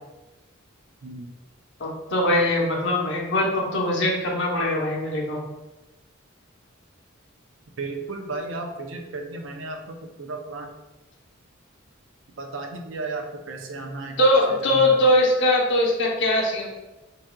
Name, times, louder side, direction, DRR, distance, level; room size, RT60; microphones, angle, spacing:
voice 1, 1.0-1.3 7.8-10.7 12.4-14.2 14.5-15.0, right 3 dB, 65° right, 4 dB, 0.5 m, -34 dB
voice 2, 1.8-5.4 14.2-16.7, left 1 dB, 60° left, -2 dB, 0.9 m, -21 dB
4.0 x 3.6 x 2.3 m, 1.1 s
head